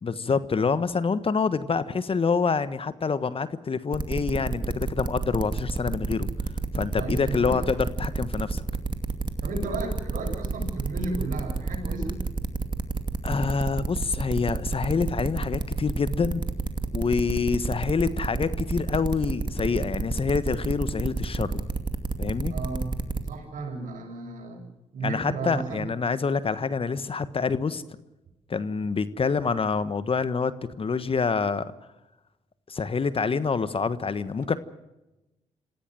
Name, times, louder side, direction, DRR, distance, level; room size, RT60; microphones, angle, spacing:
voice 1, 0.0-6.3 6.7-8.6 13.2-16.5 16.9-21.6 22.2-22.5 25.0-27.8 28.5-31.7 32.7-34.6, left 5 dB, 40° left, 14 dB, 1.4 m, -26 dB
sound 1, 3.9-23.3, right 3 dB, 30° right, 2.4 m, -29 dB
voice 2, 6.9-7.6 9.4-12.2 22.5-23.0 23.3-24.6 24.9-25.9, right 3 dB, 65° right, 2 dB, 7.6 m, -34 dB
26.5 x 16.0 x 7.8 m, 0.98 s
hypercardioid pair, 50°, 15 cm